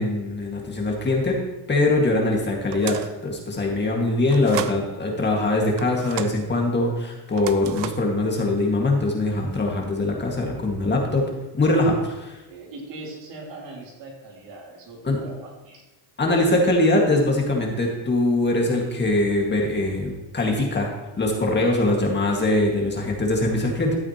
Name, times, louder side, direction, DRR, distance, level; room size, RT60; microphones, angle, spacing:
voice 1, 0.0-1.4 1.7-12.4 15.0-15.2 16.2-20.9 21.2-24.0, left 2 dB, 25° left, 0 dB, 1.8 m, -22 dB
sound 1, 2.7-3.2 4.3-4.8 5.8-6.4 7.3-8.1, right 12 dB, 70° right, 0.7 m, -34 dB
voice 2, 12.5-15.8 21.7-21.9, right 2 dB, 85° right, -3 dB, 3.3 m, -40 dB
12.5 x 8.2 x 2.9 m, 1.0 s
cardioid pair, 135°, 43 cm